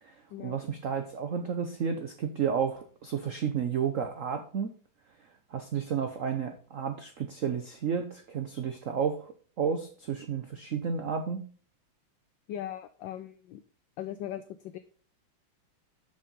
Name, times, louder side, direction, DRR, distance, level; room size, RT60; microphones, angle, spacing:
voice 1, 0.0-4.8 5.5-11.5, right 7 dB, 80° right, 7 dB, 0.7 m, -32 dB
voice 2, 12.5-13.6 14.0-14.8, left 11 dB, 75° left, 11 dB, 1.1 m, -39 dB
6.5 x 6.5 x 5.2 m, 0.42 s
omnidirectional pair, 2.4 m